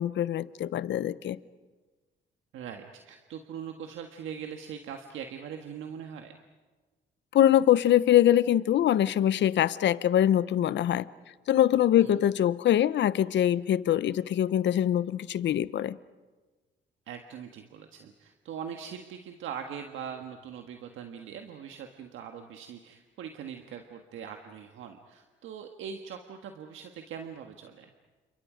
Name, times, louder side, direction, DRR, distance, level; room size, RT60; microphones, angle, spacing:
voice 1, 0.0-1.4 7.3-11.1 11.5-16.0, left 11 dB, 65° left, 17 dB, 0.8 m, -23 dB
voice 2, 2.5-6.4 12.0-12.2 17.1-27.9, right 7 dB, 80° right, 4 dB, 1.6 m, -41 dB
30.0 x 27.0 x 5.1 m, 1.3 s
cardioid pair, 90°, 20 cm